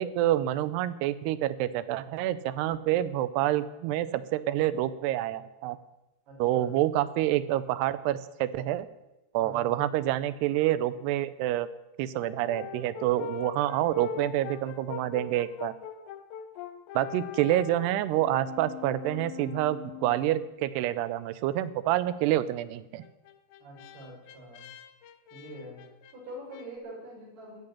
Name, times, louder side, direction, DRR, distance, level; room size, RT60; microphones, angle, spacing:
voice 1, 0.0-5.8 6.4-8.9 9.3-11.7 12.0-15.7 17.0-23.0, right 13 dB, 90° right, 16 dB, 2.7 m, -27 dB
voice 2, 6.3-6.7 9.4-9.8 23.6-24.7 25.3-25.8 26.1-27.6, right 1 dB, 70° right, -4 dB, 7.2 m, -44 dB
Brass instrument, 12.2-20.5 23.0-26.7, left 9 dB, 75° left, 2.5 m, -42 dB
14.0 x 6.8 x 9.9 m, 0.98 s
omnidirectional pair, 4.7 m